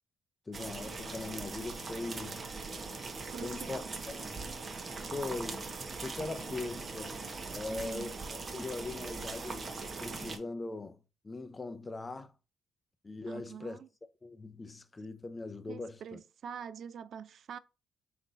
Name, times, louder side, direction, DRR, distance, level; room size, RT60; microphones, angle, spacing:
voice 1, 0.5-2.5 3.4-3.8 4.3-4.7 5.1-5.7 6.0-7.2 7.5-9.7 10.0-11.0 11.2-12.3 13.0-13.8 14.2-16.2, left 3 dB, 25° left, 0.5 m, -40 dB
sound 1, 0.5-10.4, right 3 dB, 35° right, 0.7 m, -41 dB
voice 2, 3.3-3.9 7.7-8.1 13.3-13.9 15.7-17.6, right 7 dB, 60° right, 0.3 m, -45 dB
3.8 x 2.5 x 3.9 m
cardioid pair, 90°, 0 cm